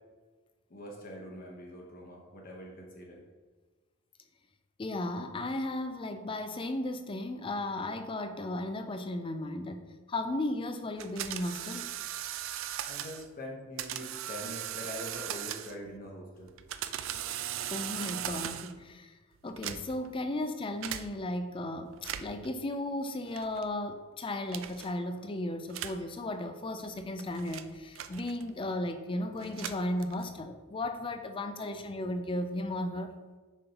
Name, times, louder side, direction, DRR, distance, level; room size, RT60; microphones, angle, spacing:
voice 1, 0.7-3.2 12.9-16.5, equal, 40° left, -1 dB, 1.0 m, -43 dB
voice 2, 4.8-11.9 17.7-19.2 19.4-33.1, left 1 dB, 25° left, 8 dB, 0.4 m, -35 dB
sound 1, 11.0-13.3 13.8-15.9 16.5-18.8 19.5-20.1 20.8-21.1 21.9-22.5 23.4-23.7 24.5-24.9 25.7-26.1 26.8-28.6 29.4-30.4, right 11 dB, 60° right, 0.3 m, -38 dB
7.1 x 5.4 x 2.9 m, 1.4 s
head